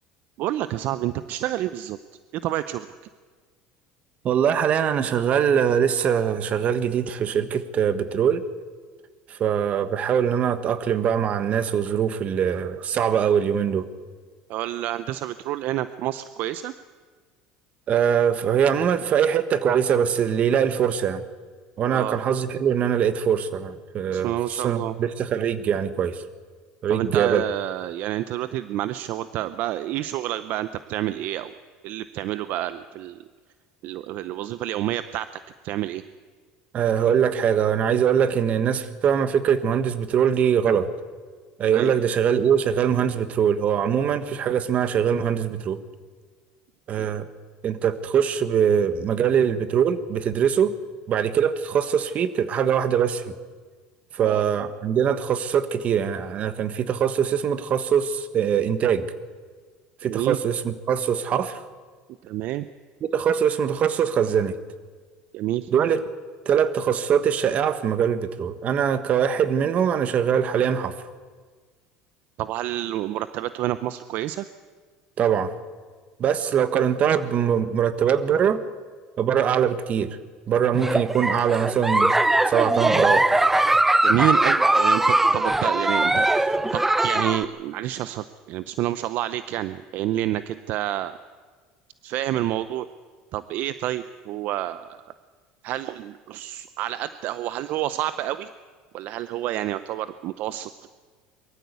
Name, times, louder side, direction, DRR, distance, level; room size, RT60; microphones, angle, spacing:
voice 1, 0.4-2.0 2.3-2.9 14.5-16.7 21.9-22.2 24.1-24.9 26.9-31.5 31.8-33.2 33.8-35.3 35.6-36.0 41.7-41.9 47.0-47.1 54.2-54.4 60.0-60.4 62.2-62.7 65.3-65.7 72.4-74.4 84.0-91.2 92.0-92.9 93.3-95.0 95.6-98.5 98.9-100.7, right 13 dB, 60° right, 13 dB, 0.6 m, -28 dB
voice 2, 4.2-8.4 9.3-13.9 17.9-21.2 21.8-26.2 26.8-27.4 36.7-40.9 41.6-45.8 46.9-47.3 47.6-50.7 51.1-53.3 54.1-59.1 60.0-61.6 63.1-64.5 65.7-66.0 66.4-70.9 75.2-75.5 76.2-78.6 79.2-80.1 80.5-82.1 82.4-83.2, right 8 dB, 40° right, 12 dB, 1.4 m, -22 dB
Giggle, 80.7-87.4, right 2 dB, 10° right, 0.8 m, -20 dB
22.5 x 14.0 x 8.3 m, 1.5 s
supercardioid pair, 120°, 3 cm